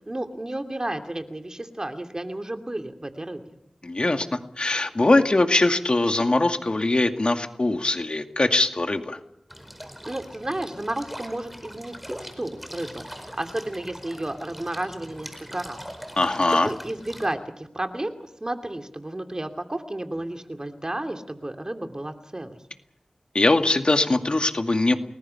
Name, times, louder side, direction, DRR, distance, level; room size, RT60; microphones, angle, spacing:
voice 1, 0.1-3.4 10.0-11.9 12.2-15.8 16.5-22.6, right 1 dB, 30° right, 5 dB, 2.6 m, -32 dB
voice 2, 3.8-9.2 16.2-16.7 23.3-25.0, left 2 dB, 45° left, 6 dB, 2.1 m, -22 dB
sound 1, 9.5-17.3, equal, 5° right, 4.7 m, -41 dB
30.0 x 20.0 x 5.8 m, 0.74 s
wide cardioid pair, 55°, 2 cm